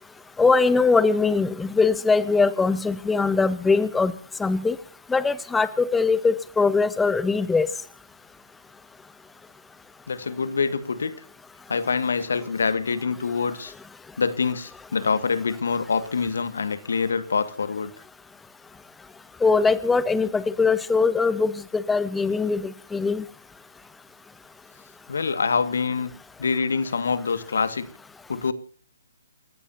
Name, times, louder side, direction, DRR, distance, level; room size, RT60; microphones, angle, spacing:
voice 1, 0.4-4.1 4.4-4.8 5.1-7.7 19.4-23.2, left 4 dB, 5° left, 17 dB, 1.0 m, -21 dB
voice 2, 10.1-11.1 11.7-13.7 14.2-17.9 25.1-26.1 26.4-27.9 28.3-28.5, left 5 dB, 70° left, 14 dB, 1.8 m, -25 dB
28.5 x 14.5 x 2.8 m, 0.43 s
figure-of-eight pair, 135°, 0 cm